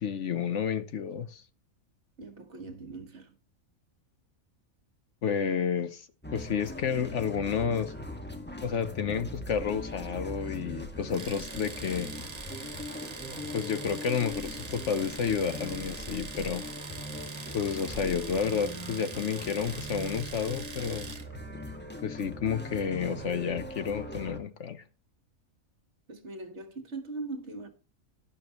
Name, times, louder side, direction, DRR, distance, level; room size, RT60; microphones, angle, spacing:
voice 1, 0.0-1.4 5.2-6.1 6.3-7.9 8.6-12.1 13.5-16.7 17.5-21.1 22.0-24.8, left 7 dB, 60° left, 1.0 m, -30 dB
voice 2, 2.2-3.4 26.1-27.7, right 3 dB, 50° right, 1.9 m, -40 dB
sound 1, 6.2-24.4, left 1 dB, 5° left, 1.6 m, -40 dB
Domestic sounds home sounds, 11.1-21.3, right 4 dB, 30° right, 1.1 m, -43 dB
12.0 x 11.5 x 3.0 m
omnidirectional pair, 1.5 m